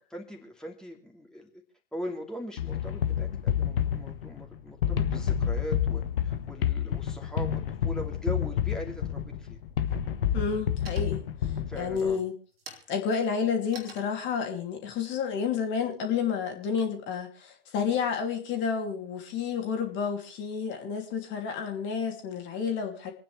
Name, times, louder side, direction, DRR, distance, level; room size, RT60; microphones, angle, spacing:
voice 1, 0.1-1.6 1.9-9.6 11.7-12.2, equal, ahead, 2.7 m, -40 dB
sound 1, 2.6-12.1, left 9 dB, 65° left, 1.4 m, -29 dB
sound 2, 9.6-9.8 10.2-10.6 10.8-11.4 11.9-16.3, right 3 dB, 75° right, 2.8 m, -49 dB
voice 2, 10.3-12.4 12.9-23.1, left 6 dB, 40° left, 2.9 m, -30 dB
28.0 x 9.3 x 3.3 m
figure-of-eight pair, 90°, 30 cm